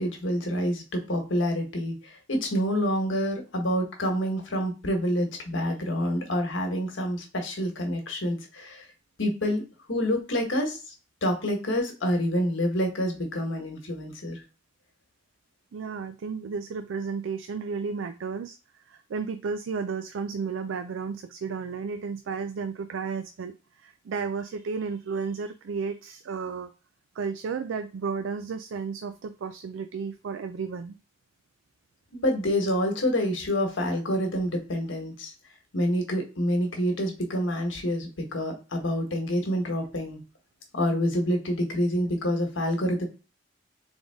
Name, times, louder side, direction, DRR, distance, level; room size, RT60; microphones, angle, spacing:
voice 1, 0.0-8.9 9.2-9.6 9.9-10.8 11.2-14.4 32.1-35.3 35.7-40.2 40.7-43.1, equal, 85° left, 3 dB, 1.3 m, -27 dB
voice 2, 15.7-18.6 18.9-26.7 27.2-31.0, right 5 dB, 90° right, 9 dB, 0.4 m, -33 dB
3.9 x 3.4 x 3.5 m, 0.31 s
head